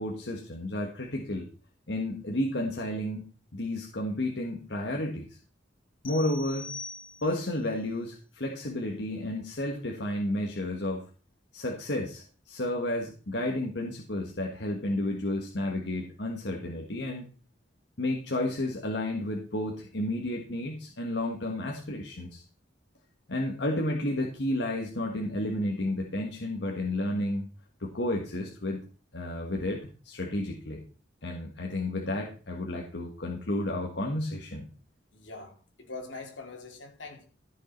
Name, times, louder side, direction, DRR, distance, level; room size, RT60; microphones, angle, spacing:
voice 1, 0.0-1.5 1.9-3.3 3.5-5.4 6.0-6.7 7.2-11.0 11.5-17.3 18.0-22.4 23.3-27.5 27.8-28.9 29.1-30.8 31.2-34.6, left 1 dB, 70° left, 1.5 m, -32 dB
sound 1, 6.0-7.6, left 3 dB, 50° left, 1.8 m, -42 dB
voice 2, 35.1-35.6 35.9-37.3, left 3 dB, 90° left, 2.8 m, -42 dB
14.0 x 6.5 x 4.4 m
head